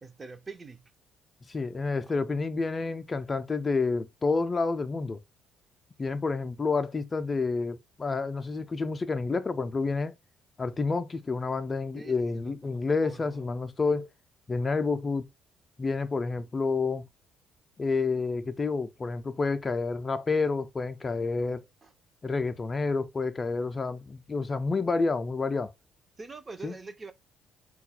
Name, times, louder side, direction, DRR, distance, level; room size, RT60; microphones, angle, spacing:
voice 1, 0.0-0.9 2.0-2.1 11.9-13.5 21.8-21.9 26.2-27.1, right 4 dB, 30° right, 0.5 m, -45 dB
voice 2, 1.5-5.2 6.0-10.1 10.6-14.1 14.5-15.2 15.8-17.0 17.8-21.7 22.2-25.7 26.6-26.7, left 4 dB, 30° left, 0.4 m, -29 dB
3.8 x 2.3 x 4.1 m
figure-of-eight pair, 45°, 0 cm